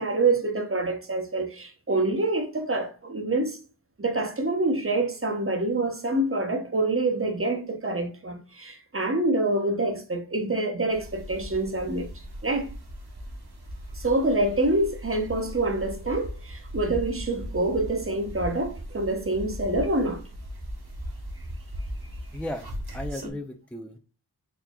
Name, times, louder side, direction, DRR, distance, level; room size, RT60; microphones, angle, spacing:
voice 1, 0.0-3.6 4.0-12.1 12.4-12.7 13.9-20.2, right 2 dB, 30° right, 0.8 m, -26 dB
sound 1, 10.9-23.3, equal, 65° right, 1.3 m, -38 dB
voice 2, 22.3-24.0, left 1 dB, 5° left, 0.4 m, -36 dB
4.4 x 3.5 x 2.2 m
wide cardioid pair, 55°, 41 cm